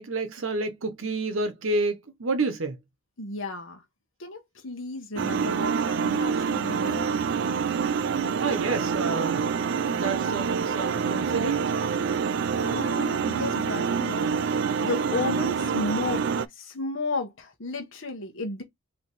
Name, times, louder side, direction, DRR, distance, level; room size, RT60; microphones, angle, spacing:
voice 1, 0.0-2.8 8.4-9.4 9.8-11.7, right 3 dB, 75° right, 0.8 m, -29 dB
voice 2, 3.2-3.8 4.2-7.1 12.6-18.6, left 2 dB, 70° left, 1.1 m, -33 dB
sound 1, 5.2-16.5, right 6 dB, 55° right, 0.3 m, -26 dB
3.3 x 2.9 x 4.1 m
head